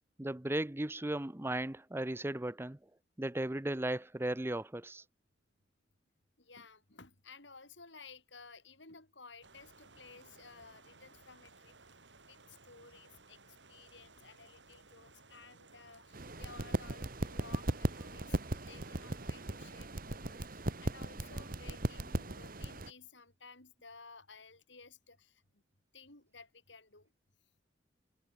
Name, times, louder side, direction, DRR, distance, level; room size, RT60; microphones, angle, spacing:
voice 1, 0.2-2.8 3.2-5.0, right 1 dB, 15° right, 0.7 m, -36 dB
voice 2, 6.4-11.8 12.3-13.4 13.7-25.6 25.9-27.1, left 4 dB, 75° left, 5.9 m, -56 dB
sound 1, 9.4-19.8, right 3 dB, 70° right, 4.7 m, -60 dB
sound 2, 16.1-22.9, right 1 dB, 50° right, 1.7 m, -37 dB
head